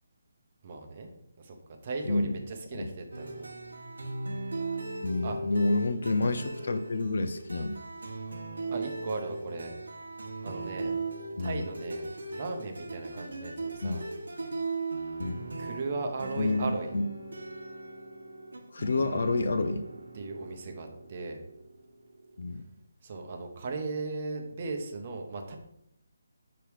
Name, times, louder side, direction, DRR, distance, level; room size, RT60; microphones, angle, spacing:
voice 1, 0.6-1.1 1.4-1.6 1.8-3.5 5.2-5.4 8.7-9.7 10.4-11.0 11.4-14.0 15.6-17.0 20.1-21.4 23.0-25.6, right 3 dB, 30° right, 4 dB, 0.8 m, -37 dB
sound 1, 3.1-22.5, right 3 dB, 80° right, 1.2 m, -38 dB
voice 2, 5.0-7.8 11.4-11.6 13.8-14.0 15.2-15.5 16.4-16.7 16.9-17.1 18.7-19.8 22.4-22.6, left 2 dB, 60° left, 9 dB, 0.5 m, -29 dB
5.8 x 3.5 x 4.7 m, 0.78 s
hypercardioid pair, 170°, 0 cm